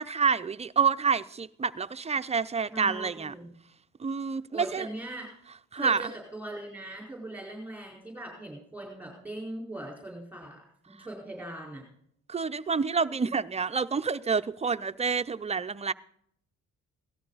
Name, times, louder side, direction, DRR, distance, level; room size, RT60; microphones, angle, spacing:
voice 1, 0.0-3.3 4.0-4.9 5.7-6.1 12.3-15.9, right 5 dB, 20° right, 0.6 m, -28 dB
voice 2, 2.7-3.5 4.5-5.3 5.7-11.8, right 1 dB, 5° right, 4.6 m, -40 dB
17.5 x 13.0 x 4.1 m
cardioid pair, 90°, 30 cm